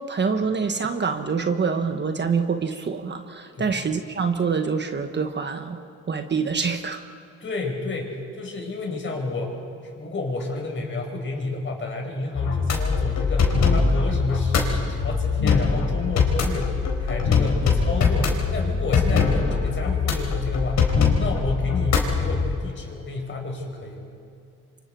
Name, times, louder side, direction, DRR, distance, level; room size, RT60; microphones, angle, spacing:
voice 1, 0.1-7.0, right 5 dB, 35° right, 6 dB, 1.4 m, -26 dB
voice 2, 7.4-9.5 10.0-20.8 21.1-24.0, left 2 dB, 40° left, 1 dB, 5.3 m, -30 dB
sound 1, 12.3-22.5, left 5 dB, 65° left, 4.4 m, -22 dB
27.5 x 25.0 x 4.6 m, 2.7 s
cardioid pair, 90°, 30 cm